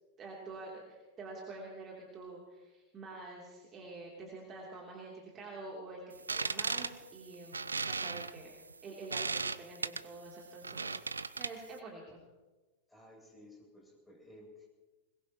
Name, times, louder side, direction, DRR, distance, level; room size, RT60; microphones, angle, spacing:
voice 1, 0.2-6.0 6.3-7.6 7.8-8.5 8.8-11.0 11.4-12.2, right 3 dB, 25° right, -2 dB, 3.1 m, -47 dB
sound 1, 6.1-11.8, right 4 dB, 75° right, 0.4 m, -37 dB
voice 2, 12.9-14.7, left 1 dB, 5° left, -3 dB, 7.5 m, -56 dB
21.5 x 21.0 x 3.0 m, 1.2 s
figure-of-eight pair, 90°, 0 cm